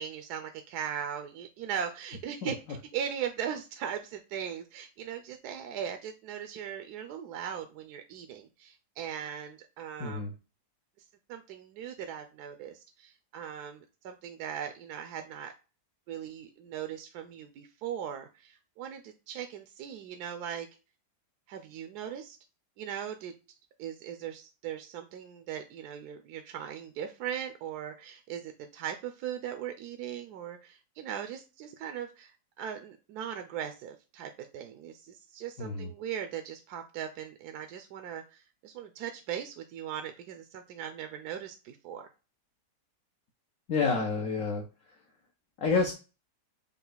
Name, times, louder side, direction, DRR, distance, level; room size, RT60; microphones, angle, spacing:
voice 1, 0.0-10.3 11.3-15.5 16.1-20.7 21.5-22.4 22.8-23.3 23.8-42.1, right 9 dB, 75° right, 6 dB, 1.1 m, -39 dB
voice 2, 10.0-10.3 35.6-35.9 43.7-44.6 45.6-45.9, left 4 dB, 60° left, 1 dB, 1.2 m, -28 dB
5.4 x 2.4 x 3.9 m, 0.31 s
omnidirectional pair, 1.8 m